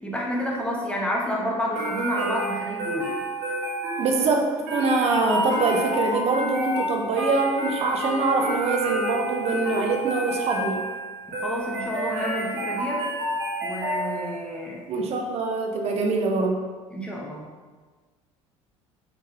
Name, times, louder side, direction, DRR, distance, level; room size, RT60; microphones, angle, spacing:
voice 1, 0.0-3.1 11.4-13.1 13.6-14.8 16.9-17.5, equal, 5° left, -3 dB, 0.8 m, -29 dB
sound 1, 1.7-14.5, right 1 dB, 60° right, 1.1 m, -29 dB
voice 2, 4.0-10.8 14.9-16.6, right 3 dB, 40° right, 2 dB, 0.6 m, -24 dB
4.5 x 2.9 x 2.3 m, 1.4 s
figure-of-eight pair, 65°, 17 cm